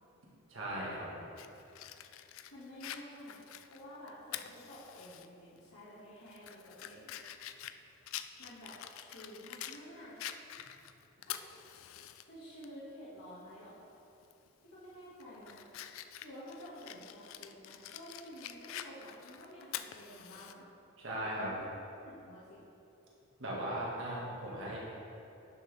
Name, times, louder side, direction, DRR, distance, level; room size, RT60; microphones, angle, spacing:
voice 1, 0.5-1.2 21.0-21.5 23.4-24.8, right 1 dB, 60° right, -5 dB, 1.8 m, -38 dB
Fire, 1.4-5.3 5.6-5.7 6.3-9.8 10.2-12.2 12.6-12.7 14.2-14.5 14.9-20.5, left 11 dB, 70° left, 0.3 m, -46 dB
voice 2, 2.3-7.1 8.4-10.2 11.3-11.4 12.2-13.8 14.6-15.6 16.2-20.7 21.4-21.7 22.0-22.6, equal, 90° left, -10 dB, 2.0 m, -51 dB
10.5 x 6.3 x 3.4 m, 2.8 s
head